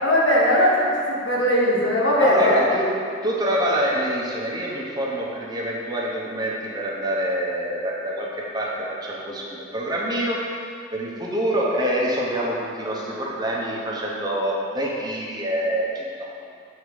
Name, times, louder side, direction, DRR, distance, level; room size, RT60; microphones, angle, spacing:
voice 1, 0.0-2.6, left 1 dB, 85° left, -4 dB, 1.6 m, -19 dB
voice 2, 2.2-2.9 3.2-10.4 10.9-16.5, equal, 25° right, -4 dB, 1.0 m, -26 dB
7.0 x 4.7 x 4.8 m, 2.3 s
head